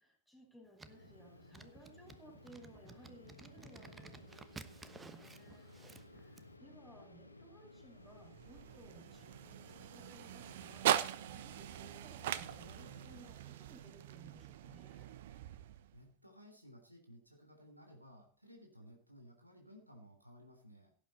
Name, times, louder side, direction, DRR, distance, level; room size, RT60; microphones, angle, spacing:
voice 1, 0.0-5.7 6.1-15.1, right 1 dB, 5° left, 1 dB, 5.2 m, -60 dB
sound 1, 0.8-6.5, right 3 dB, 15° right, 1.1 m, -55 dB
sound 2, 0.9-13.3, left 2 dB, 85° left, 1.8 m, -58 dB
sound 3, 7.8-16.1, right 11 dB, 55° right, 1.0 m, -40 dB
voice 2, 15.9-21.0, equal, 90° right, 3 dB, 3.4 m, -58 dB
17.0 x 8.9 x 4.3 m, 0.43 s
figure-of-eight pair, 90°, 0 cm